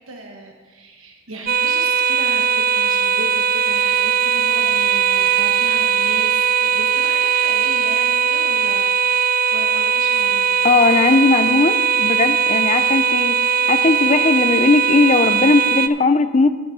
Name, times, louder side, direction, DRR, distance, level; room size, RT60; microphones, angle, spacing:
voice 1, 0.1-8.9 9.5-10.5, right 1 dB, 70° right, 1 dB, 1.1 m, -36 dB
sound 1, 1.5-15.9, right 7 dB, 40° right, 0.4 m, -19 dB
voice 2, 10.6-16.5, left 3 dB, 30° left, 11 dB, 0.5 m, -17 dB
10.5 x 7.5 x 5.7 m, 1.5 s
head